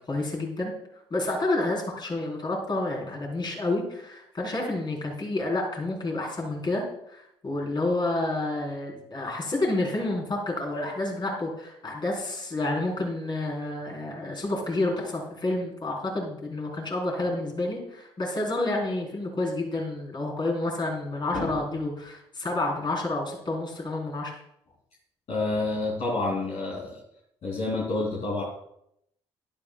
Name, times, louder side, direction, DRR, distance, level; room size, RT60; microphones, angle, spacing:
voice 1, 0.1-0.7 1.1-24.3, left 2 dB, 35° left, -1 dB, 4.0 m, -29 dB
voice 2, 25.3-27.0 27.4-28.4, left 2 dB, 50° left, -5 dB, 3.0 m, -28 dB
12.0 x 11.5 x 2.3 m, 0.76 s
figure-of-eight pair, 45°, 14 cm